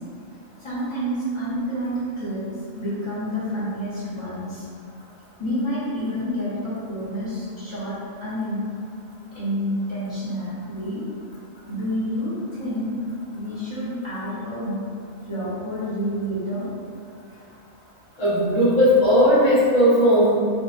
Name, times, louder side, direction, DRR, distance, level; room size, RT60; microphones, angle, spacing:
voice 1, 0.6-2.4 2.7-4.7 5.4-8.6 9.3-11.0 11.7-12.9 13.3-14.8 15.2-16.7 17.3-17.4, equal, 25° left, -13 dB, 0.8 m, -28 dB
voice 2, 18.2-20.4, equal, 60° left, -7 dB, 0.9 m, -17 dB
2.6 x 2.0 x 2.4 m, 2.3 s
omnidirectional pair, 1.4 m